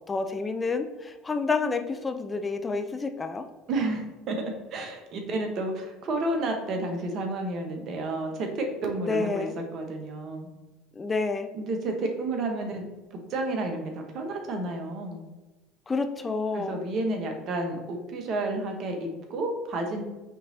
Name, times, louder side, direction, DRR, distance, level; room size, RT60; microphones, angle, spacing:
voice 1, 0.1-3.4 9.0-9.5 11.0-11.5 15.9-16.8, left 4 dB, 25° left, 7 dB, 0.4 m, -29 dB
voice 2, 3.7-4.4 4.7-9.5 9.7-10.5 11.5-12.8 13.3-15.2 16.5-20.0, right 2 dB, 55° right, 3 dB, 1.1 m, -31 dB
5.7 x 3.1 x 2.8 m, 1.1 s
hypercardioid pair, 80°, 0 cm